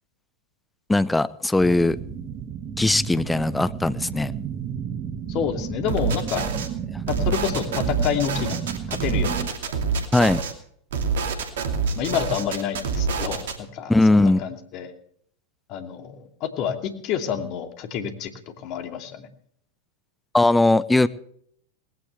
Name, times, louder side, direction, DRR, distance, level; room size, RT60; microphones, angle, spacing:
voice 1, 0.9-2.0 2.8-4.3 10.1-10.4 13.9-14.4 20.3-21.1, left 2 dB, 10° left, 16 dB, 0.8 m, -19 dB
sound 1, 1.6-9.5, right 7 dB, 35° right, 1.6 m, -33 dB
voice 2, 5.3-6.5 7.1-8.6 8.9-9.5 12.0-14.9 15.7-18.3 18.6-19.3, left 8 dB, 45° left, 6 dB, 2.7 m, -28 dB
sound 2, 5.9-6.7 7.1-10.5 10.9-13.6, right 5 dB, 70° right, 2.7 m, -26 dB
19.5 x 17.0 x 3.3 m, 0.64 s
hypercardioid pair, 95°, 0 cm